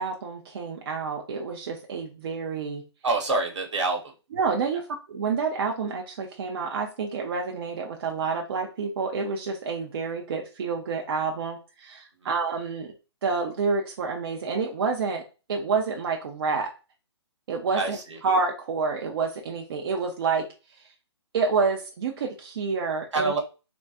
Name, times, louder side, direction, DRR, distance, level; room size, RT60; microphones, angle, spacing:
voice 1, 0.0-2.8 4.3-12.9 13.2-15.2 15.5-16.7 17.5-18.0 18.2-20.5 21.3-23.3, right 4 dB, 55° right, 2 dB, 0.5 m, -28 dB
voice 2, 3.0-4.0 17.8-18.2 23.1-23.4, right 3 dB, 80° right, 1 dB, 1.1 m, -26 dB
3.4 x 2.2 x 2.8 m, 0.32 s
hypercardioid pair, 140°, 15 cm